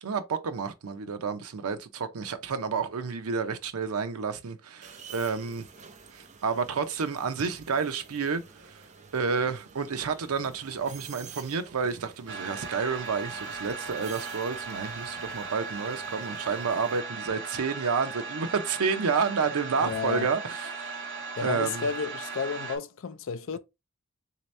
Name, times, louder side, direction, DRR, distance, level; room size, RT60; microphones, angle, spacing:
voice 1, 0.0-5.7 6.1-8.8 9.1-21.1 21.4-21.9, right 5 dB, 85° right, 0.6 m, -30 dB
sound 1, 4.8-17.0, right 5 dB, 30° right, 0.5 m, -50 dB
sound 2, 12.3-22.8, right 4 dB, 55° right, 0.8 m, -37 dB
voice 2, 19.8-20.3 21.4-23.6, left 5 dB, 60° left, 0.4 m, -32 dB
3.4 x 2.8 x 3.1 m
head